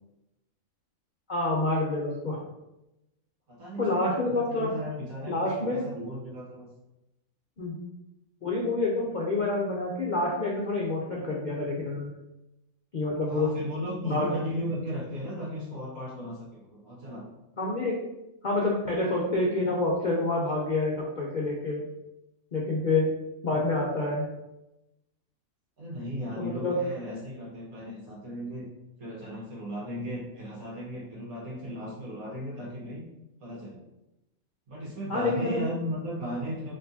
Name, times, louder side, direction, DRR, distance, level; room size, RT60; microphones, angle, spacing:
voice 1, 1.3-2.4 3.8-4.7 5.3-5.8 7.6-7.7 8.4-12.1 12.9-13.5 14.0-14.3 17.6-18.0 18.4-21.8 22.5-23.1 23.4-24.3 26.4-26.8 35.1-35.6, left 2 dB, 55° left, -3 dB, 0.5 m, -27 dB
voice 2, 3.5-6.7 13.3-17.2 25.8-28.7 29.0-33.0 33.4-33.8 34.7-36.7, equal, 75° right, -5 dB, 1.8 m, -36 dB
4.3 x 3.0 x 2.7 m, 0.93 s
omnidirectional pair, 1.5 m